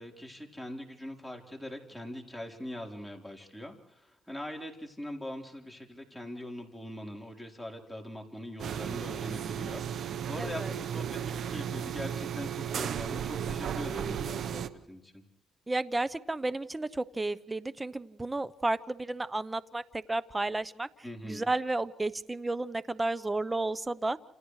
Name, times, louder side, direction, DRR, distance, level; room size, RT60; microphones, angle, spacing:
voice 1, 0.0-15.2 21.0-21.5, left 1 dB, 5° left, 0 dB, 4.0 m, -42 dB
sound 1, 8.6-14.7, right 8 dB, 65° right, 0.9 m, -34 dB
voice 2, 10.4-10.7 15.7-19.8 20.1-20.9 21.2-24.2, right 2 dB, 15° right, 15 dB, 0.8 m, -32 dB
30.0 x 28.0 x 3.3 m, 0.89 s
cardioid pair, 90°, 0 cm